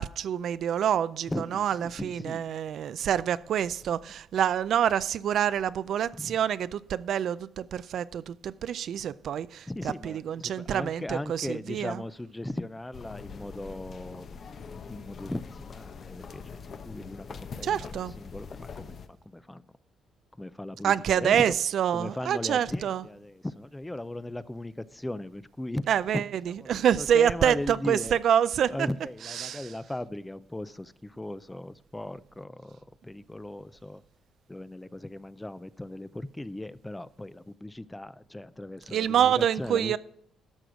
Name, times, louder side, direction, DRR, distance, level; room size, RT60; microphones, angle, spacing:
voice 1, 0.0-12.0 17.6-18.1 20.8-23.0 25.9-28.9 29.3-29.7 38.9-40.0, right 9 dB, 70° right, 0.4 m, -27 dB
voice 2, 1.3-2.4 6.2-6.4 9.7-14.3 14.7-16.6 16.9-19.6 20.4-21.5 21.9-25.9 26.1-28.2 28.7-34.0 34.5-40.0, left 1 dB, 10° left, 0.5 m, -38 dB
sound 1, 12.9-19.1, left 5 dB, 55° left, 0.9 m, -43 dB
11.5 x 6.2 x 5.0 m
cardioid pair, 90°, 0 cm